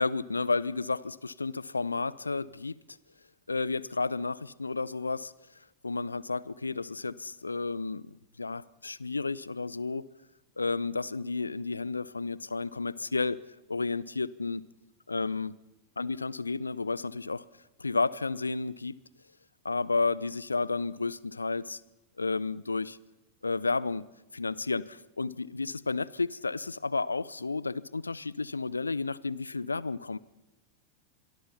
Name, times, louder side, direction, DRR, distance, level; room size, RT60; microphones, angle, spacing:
voice 1, 0.0-2.7 3.5-5.3 5.8-8.1 8.4-10.1 10.6-13.4 13.7-14.7 15.1-15.6 16.0-17.4 17.8-19.0 19.6-21.8 22.2-23.0 23.4-24.1 24.3-30.2, left 3 dB, 80° left, 22 dB, 0.7 m, -32 dB
26.0 x 23.0 x 5.7 m, 0.98 s
figure-of-eight pair, 90°, 0 cm